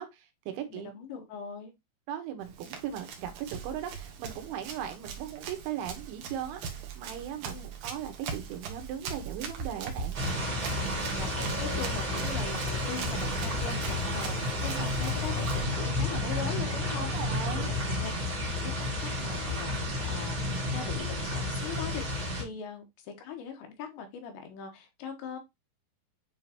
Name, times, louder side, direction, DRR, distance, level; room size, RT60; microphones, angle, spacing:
voice 1, 0.0-0.9 2.1-10.2 14.7-14.9 17.1-17.7, right 9 dB, 80° right, 3.5 m, -38 dB
voice 2, 0.7-1.7 7.5-7.7 10.8-18.1 18.4-19.7 20.1-25.4, left 6 dB, 75° left, 3.3 m, -41 dB
Run, 2.4-15.7, right 6 dB, 65° right, 2.5 m, -40 dB
sound 1, 10.1-22.4, left 1 dB, 40° right, 2.0 m, -31 dB
9.1 x 3.8 x 2.9 m
omnidirectional pair, 5.4 m